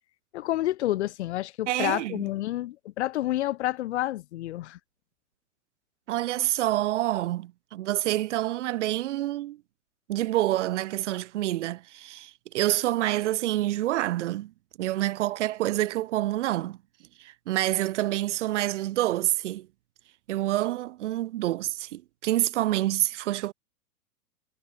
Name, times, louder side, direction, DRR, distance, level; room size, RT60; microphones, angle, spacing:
voice 1, 0.3-4.8, left 15 dB, 45° left, 0.8 m, -29 dB
voice 2, 1.7-2.3 6.1-9.6 10.1-14.5 14.8-16.8 17.2-19.7 20.3-23.5, right 15 dB, 50° right, 0.9 m, -27 dB
figure-of-eight pair, 110°, 47 cm